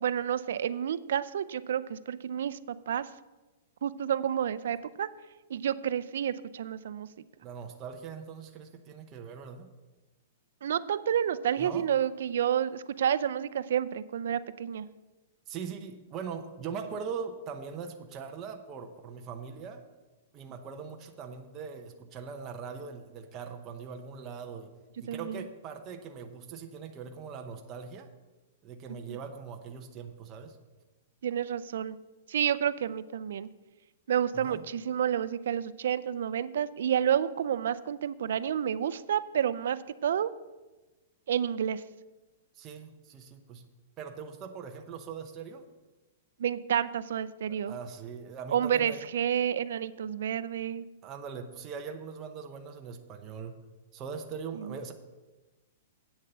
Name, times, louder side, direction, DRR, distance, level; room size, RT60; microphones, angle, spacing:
voice 1, 0.0-3.1 3.8-5.1 5.5-7.1 10.6-14.9 25.1-25.5 29.1-29.2 31.2-32.0 32.3-33.5 34.1-40.3 41.3-41.8 46.4-47.7 48.5-50.9 54.6-54.7, right 9 dB, 70° right, 15 dB, 0.5 m, -30 dB
voice 2, 7.4-9.7 11.6-11.9 15.5-19.8 20.3-24.7 25.0-28.1 28.6-30.6 34.3-34.7 42.6-43.6 44.0-45.6 47.5-49.0 51.0-53.6 53.9-54.9, right 6 dB, 25° right, 3 dB, 0.8 m, -41 dB
8.9 x 7.3 x 6.8 m, 1.2 s
hypercardioid pair, 160°, 0 cm